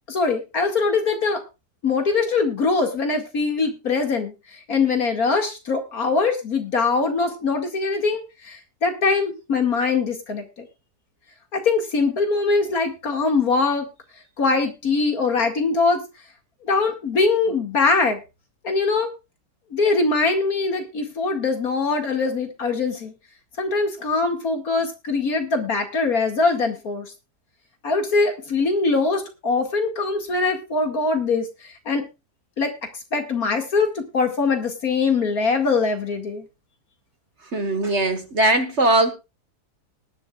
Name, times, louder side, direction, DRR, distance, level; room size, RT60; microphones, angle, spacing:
voice 1, 0.1-1.4 1.8-10.7 11.5-13.9 14.4-16.0 16.6-18.2 18.6-19.1 19.7-23.1 23.6-27.1 27.8-32.0 32.6-32.7 33.1-36.4, left 4 dB, 60° left, 4 dB, 2.6 m, -22 dB
voice 2, 37.5-39.1, right 2 dB, 45° right, 8 dB, 1.7 m, -20 dB
19.5 x 11.0 x 2.4 m, 0.27 s
omnidirectional pair, 1.7 m